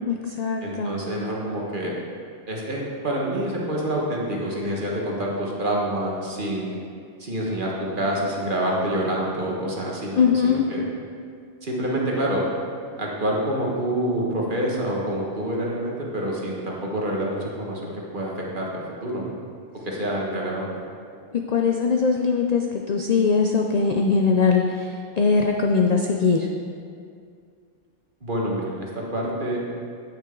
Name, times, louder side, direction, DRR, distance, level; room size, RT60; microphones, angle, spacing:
voice 1, 0.0-1.1 10.2-10.6 21.5-22.6 22.9-24.9 25.2-26.5, left 5 dB, 50° left, 2 dB, 0.5 m, -21 dB
voice 2, 0.6-2.0 2.5-6.8 7.2-10.8 11.6-12.4 13.0-19.4 19.8-20.7 28.2-29.7, right 1 dB, 45° right, -3 dB, 1.6 m, -27 dB
9.0 x 8.9 x 3.8 m, 2.3 s
omnidirectional pair, 1.2 m